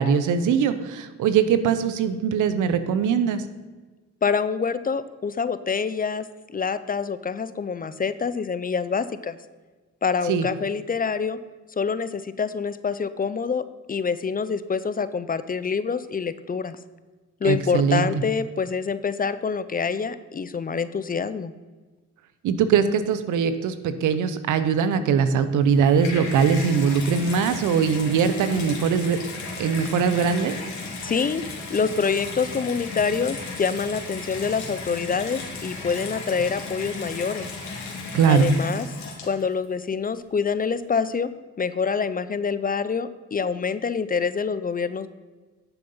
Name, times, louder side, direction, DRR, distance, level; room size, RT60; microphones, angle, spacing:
voice 1, 0.0-3.4 10.3-10.5 17.4-18.1 22.4-29.2 29.6-30.6 38.1-38.5, right 6 dB, 80° right, 12 dB, 0.9 m, -21 dB
voice 2, 4.2-9.4 10.0-11.4 11.8-16.8 17.4-21.5 31.0-31.4 31.7-37.5 38.3-38.9 39.2-41.3 41.6-45.1, left 5 dB, 30° left, 14 dB, 0.6 m, -26 dB
Water tap faucet / Bathtub (filling or washing), 25.6-39.6 40.4-40.5, left 3 dB, 65° left, 2.8 m, -35 dB
10.5 x 6.8 x 5.6 m, 1.3 s
cardioid pair, 90°, 30 cm